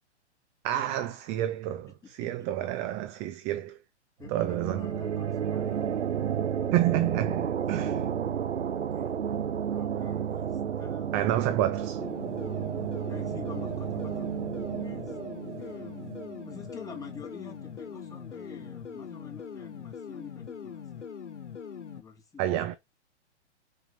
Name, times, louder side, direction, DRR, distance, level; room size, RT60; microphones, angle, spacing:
voice 1, 0.6-3.8 4.3-4.9 6.7-8.0 11.1-12.0 22.4-22.8, right 13 dB, 20° right, 0.5 m, -29 dB
voice 2, 2.0-2.7 4.2-6.0 6.6-6.8 7.8-8.1 8.7-9.2 9.7-11.3 13.0-14.3 14.8-15.2 15.6-16.2 16.4-21.1 21.9-22.8, left 5 dB, 10° left, 2.9 m, -48 dB
sound 1, 4.2-17.6, right 8 dB, 75° right, 0.9 m, -32 dB
sound 2, 12.0-22.0, left 7 dB, 75° left, 1.3 m, -42 dB
5.8 x 5.6 x 5.5 m
figure-of-eight pair, 115°, 35 cm